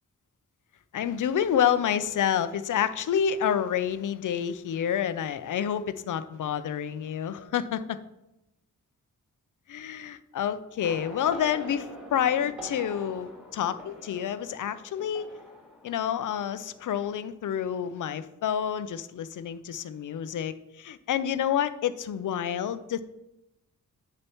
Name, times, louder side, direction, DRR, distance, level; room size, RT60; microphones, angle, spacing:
voice 1, 0.9-8.0 9.7-15.4 15.8-23.0, left 9 dB, 70° left, 13 dB, 0.5 m, -28 dB
sound 1, 10.8-17.3 17.5-17.9, equal, 5° right, 2.2 m, -45 dB
9.4 x 6.4 x 3.0 m, 0.90 s
wide cardioid pair, 150°, 32 cm